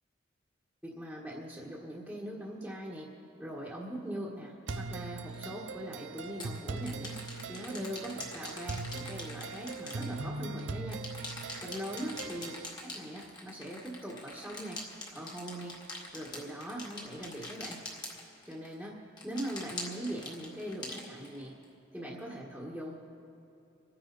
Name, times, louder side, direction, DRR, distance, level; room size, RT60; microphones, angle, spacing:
voice 1, 0.8-3.1 3.4-7.2 7.5-11.0 11.6-12.5 13.0-14.8 15.1-17.8 18.4-19.0 19.2-21.6 21.9-23.0, right 1 dB, ahead, -4 dB, 1.5 m, -41 dB
sound 1, 4.7-12.7, right 3 dB, 75° right, 0.6 m, -41 dB
sound 2, 5.3-5.4 6.2-10.6 10.9-18.7 19.2-21.6, left 2 dB, 25° left, 2.0 m, -44 dB
26.0 x 9.8 x 4.1 m, 2.8 s
head